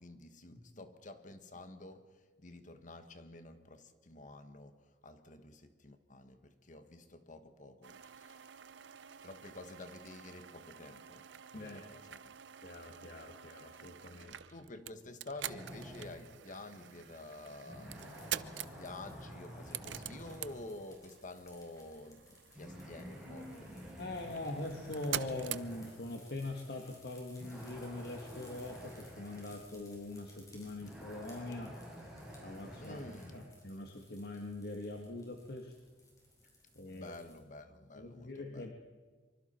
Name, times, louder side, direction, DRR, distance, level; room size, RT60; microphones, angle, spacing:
voice 1, 0.0-8.6 9.2-12.3 14.2-23.8 32.8-33.5 36.9-38.7, left 2 dB, 45° left, 1.5 m, -50 dB
sound 1, 7.8-26.2, right 11 dB, 80° right, 0.6 m, -47 dB
voice 2, 12.6-14.4 24.0-31.8 32.4-33.0 33.3-35.7 36.8-37.2 38.0-38.7, left 2 dB, 60° left, 1.8 m, -43 dB
sound 2, 15.4-16.2 16.9-17.0 17.7-20.6 22.5-26.0 26.7-26.9 27.4-29.5 30.8-33.5, equal, 5° right, 7.2 m, -49 dB
sound 3, 18.0-37.4, left 2 dB, 20° left, 5.4 m, -62 dB
25.0 x 24.0 x 4.4 m
head